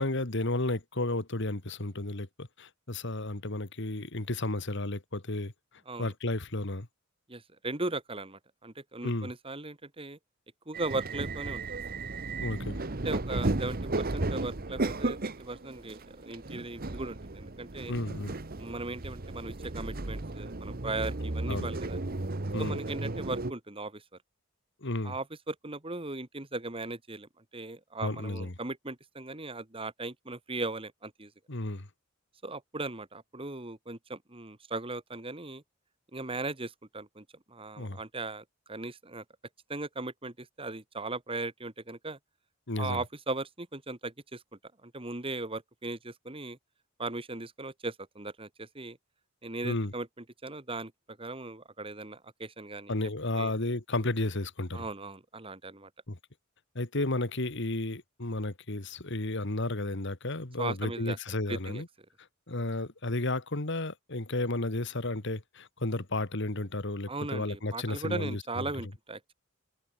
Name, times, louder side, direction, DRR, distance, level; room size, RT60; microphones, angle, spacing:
voice 1, 0.0-5.5 6.0-6.9 9.0-9.3 12.4-12.8 17.9-18.4 21.5-21.7 22.5-22.8 24.8-25.2 28.0-28.5 31.5-31.9 37.8-38.0 42.7-43.0 49.6-49.9 52.9-54.9 56.1-56.2 56.8-61.9 62.5-68.7, left 2 dB, 60° left, 2.1 m, -32 dB
voice 2, 7.3-10.2 10.7-11.6 12.9-17.9 18.6-22.0 22.6-24.0 25.0-31.3 32.4-35.6 36.1-39.2 39.7-42.2 42.8-44.4 44.8-46.6 47.0-49.0 49.4-50.1 50.4-53.0 53.3-53.5 54.7-55.9 60.6-61.2 61.5-61.8 67.1-69.3, right 2 dB, 25° right, 2.1 m, -38 dB
sound 1, 10.7-23.5, right 2 dB, 45° right, 1.2 m, -34 dB
head